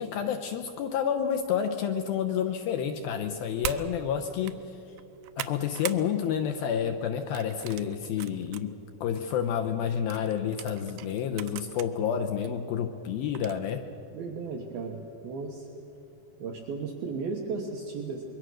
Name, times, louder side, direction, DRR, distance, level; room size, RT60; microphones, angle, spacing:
voice 1, 0.0-4.8 5.4-13.9, left 8 dB, 80° left, 5 dB, 2.3 m, -29 dB
sound 1, 3.6-3.9 4.3-4.6 5.0-6.0 6.4-6.7 7.4-8.6 9.1-9.2 10.1-11.9 12.4-12.5 13.4-13.7, right 14 dB, 85° right, 2.9 m, -39 dB
voice 2, 14.1-15.0 15.2-15.7 16.4-18.2, right 4 dB, 65° right, 1 dB, 2.9 m, -35 dB
26.0 x 22.5 x 6.4 m, 2.9 s
omnidirectional pair, 5.1 m